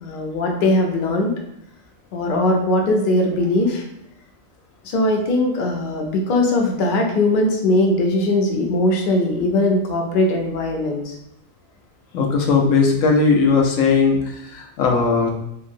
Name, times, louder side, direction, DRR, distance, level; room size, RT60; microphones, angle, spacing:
voice 1, 0.0-1.4 2.1-3.8 4.8-11.1, left 2 dB, 55° left, 1 dB, 0.6 m, -20 dB
voice 2, 12.1-15.3, left 4 dB, 80° left, 1 dB, 1.0 m, -18 dB
2.8 x 2.6 x 2.6 m, 0.80 s
omnidirectional pair, 1.3 m